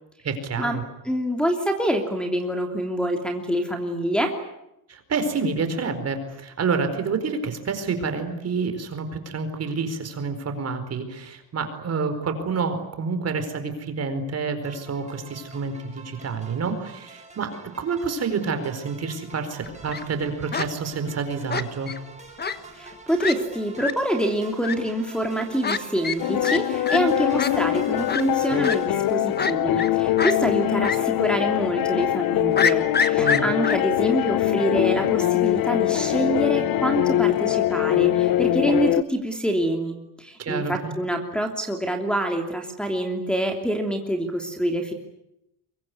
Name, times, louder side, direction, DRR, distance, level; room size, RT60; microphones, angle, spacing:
voice 1, 0.2-0.8 4.9-21.9 33.2-33.5 40.4-40.9, right 5 dB, 40° right, 8 dB, 4.6 m, -28 dB
voice 2, 1.0-4.3 22.8-44.9, right 1 dB, ahead, 1 dB, 3.0 m, -26 dB
sound 1, 14.6-28.9, right 3 dB, 15° right, 6.2 m, -45 dB
Fowl, 19.6-20.0 20.5-20.7 21.5-22.0 22.4-22.6 22.9-23.0 23.2-23.3 23.8-23.9 24.6-24.7 25.6-25.8 26.0-26.2 26.4-26.6 26.9-27.0 27.4-27.5 28.1-28.2 28.6-28.8 29.4-29.9 30.2-30.3 30.8-31.0 31.3-31.4 32.6-33.8, left 6 dB, 25° left, 1.4 m, -25 dB
sound 2, 26.2-39.0, left 14 dB, 60° left, 1.1 m, -23 dB
24.0 x 23.0 x 9.6 m, 0.83 s
cardioid pair, 145°, 39 cm